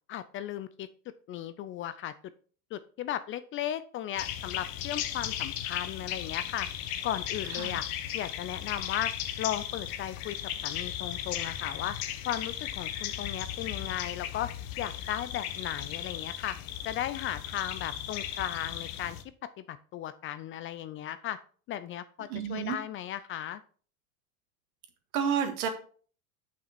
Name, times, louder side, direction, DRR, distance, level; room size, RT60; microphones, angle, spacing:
voice 1, 0.1-0.9 1.3-2.1 2.7-6.7 7.0-7.8 8.1-9.1 9.4-10.4 10.6-12.0 12.3-14.5 14.8-16.6 16.8-19.2 19.7-21.4 21.7-23.6, left 11 dB, 30° left, 13 dB, 0.4 m, -36 dB
sound 1, 4.2-19.2, left 11 dB, 50° left, 1.0 m, -36 dB
voice 2, 22.3-22.8 25.1-25.7, right 7 dB, 70° right, 6 dB, 1.7 m, -30 dB
7.0 x 5.9 x 4.4 m, 0.43 s
hypercardioid pair, 95°, 44 cm